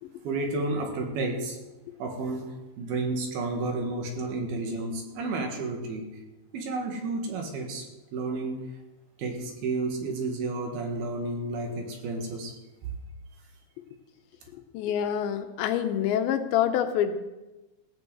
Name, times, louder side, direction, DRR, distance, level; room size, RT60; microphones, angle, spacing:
voice 1, 0.2-1.6 2.0-6.1 6.5-7.9 8.1-8.7 9.2-12.5, right 3 dB, 65° right, 3 dB, 3.4 m, -31 dB
voice 2, 14.5-17.2, left 9 dB, 80° left, 8 dB, 3.1 m, -27 dB
16.5 x 7.4 x 7.8 m, 1.1 s
omnidirectional pair, 5.1 m